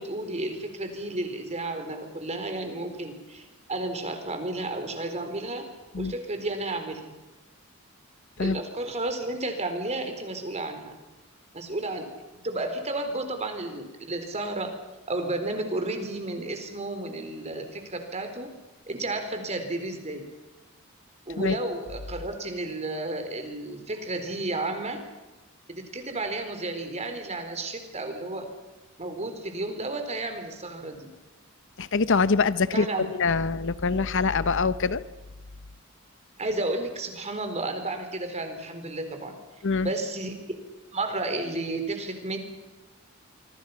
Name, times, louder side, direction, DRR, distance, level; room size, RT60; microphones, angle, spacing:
voice 1, 0.0-5.7 6.0-7.2 8.4-10.9 11.5-12.1 12.4-14.7 15.1-18.5 18.9-20.3 21.3-25.0 25.7-28.5 29.0-31.1 32.7-33.1 36.4-39.4 39.8-40.6 40.9-42.4, right 2 dB, 30° right, 6 dB, 4.1 m, -32 dB
voice 2, 31.8-35.0 39.6-39.9, left 4 dB, 65° left, 15 dB, 0.8 m, -24 dB
26.5 x 24.5 x 5.8 m, 1.1 s
head